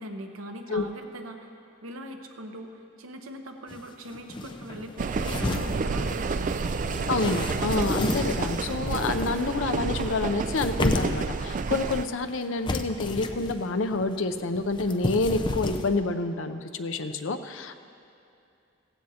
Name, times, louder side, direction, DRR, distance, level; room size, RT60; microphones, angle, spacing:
voice 1, 0.0-1.5 1.8-6.6, right 1 dB, 90° right, 4 dB, 0.9 m, -40 dB
sound 1, 3.7-3.8 4.1-9.6 10.0-11.3 11.7-12.4 12.6-13.6 13.8-16.0, left 2 dB, 25° left, 0.5 m, -32 dB
sound 2, 5.0-12.1, right 4 dB, 40° right, 0.3 m, -30 dB
voice 2, 7.1-17.8, left 3 dB, 70° left, 9 dB, 0.6 m, -28 dB
17.0 x 15.5 x 2.8 m, 2.6 s
head